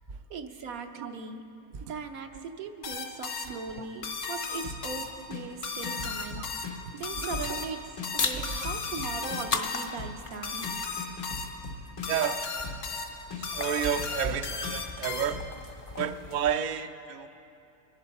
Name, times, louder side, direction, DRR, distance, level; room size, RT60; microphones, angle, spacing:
voice 1, 0.3-1.4 1.9-7.9 8.1-10.7, right 5 dB, 85° right, 5 dB, 1.3 m, -39 dB
sound 1, 2.8-15.6, left 4 dB, 65° left, 1.3 m, -36 dB
sound 2, 4.6-16.3, left 3 dB, 90° left, 1.9 m, -41 dB
voice 2, 7.2-7.6 8.4-8.7 12.1-12.5 13.4-15.4 16.0-17.3, right 8 dB, 60° right, 9 dB, 0.4 m, -31 dB
sound 3, 8.1-16.5, left 4 dB, 45° left, 0.5 m, -38 dB
23.0 x 10.5 x 4.2 m, 2.7 s
omnidirectional pair, 1.5 m